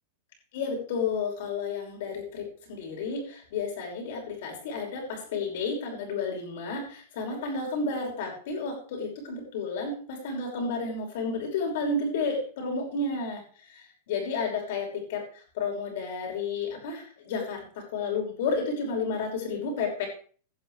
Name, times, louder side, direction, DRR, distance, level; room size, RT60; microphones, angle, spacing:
voice 1, 0.5-13.4 13.7-15.2 15.5-20.1, left 4 dB, 50° left, 1 dB, 6.0 m, -31 dB
17.5 x 11.0 x 3.4 m, 0.43 s
supercardioid pair, 175°, 0 cm